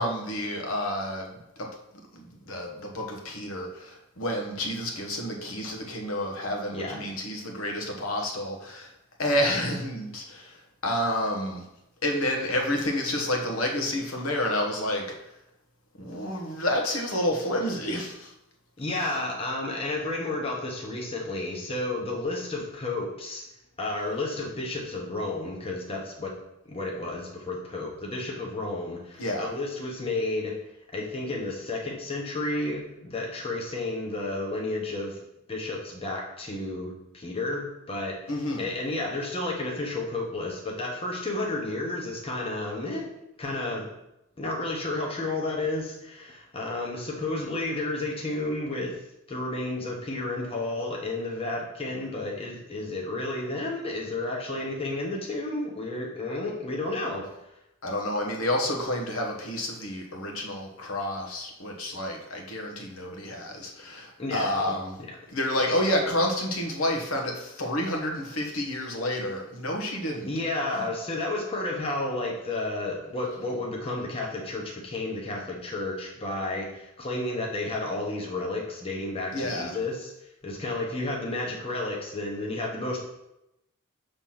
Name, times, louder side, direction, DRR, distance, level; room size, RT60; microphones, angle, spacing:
voice 1, 0.0-1.7 2.1-8.9 9.2-11.6 12.0-15.1 16.0-18.3 29.2-29.5 38.3-38.7 57.8-65.0 65.3-70.3 70.7-70.8 79.3-79.8, left 1 dB, 85° left, 1 dB, 1.2 m, -29 dB
voice 2, 18.8-23.4 23.8-26.4 26.7-30.6 30.9-35.2 35.5-38.2 38.6-43.1 43.4-43.9 44.4-49.0 49.3-57.5 64.2-64.7 65.0-65.1 70.2-80.1 80.4-83.0, left 2 dB, 25° left, -1 dB, 0.9 m, -32 dB
5.9 x 3.4 x 5.6 m, 0.88 s
head